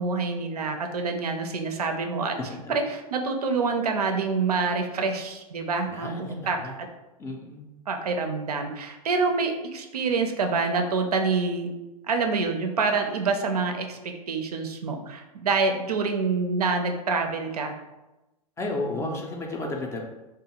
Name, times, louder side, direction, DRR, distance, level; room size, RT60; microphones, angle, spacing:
voice 1, 0.0-2.4 2.7-6.6 7.9-11.7 12.1-17.7 18.9-19.2, right 4 dB, 90° right, 4 dB, 0.4 m, -27 dB
voice 2, 5.9-6.8 7.2-7.7 18.6-20.1, left 2 dB, 15° left, 1 dB, 0.3 m, -33 dB
2.5 x 2.3 x 2.8 m, 1.0 s
hypercardioid pair, 105°, 19 cm